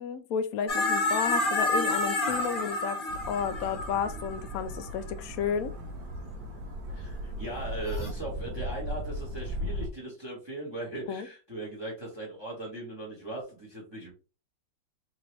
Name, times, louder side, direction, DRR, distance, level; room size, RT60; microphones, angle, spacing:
voice 1, 0.0-3.0 3.3-5.7 11.1-11.3, left 7 dB, 80° left, 0.8 m, -32 dB
sound 1, 0.7-5.1 7.9-8.1, left 2 dB, 35° left, 1.0 m, -29 dB
sound 2, 3.1-9.9, equal, 70° right, 1.3 m, -37 dB
voice 2, 6.9-14.1, right 2 dB, 20° right, 0.9 m, -39 dB
4.2 x 2.8 x 3.1 m
omnidirectional pair, 2.0 m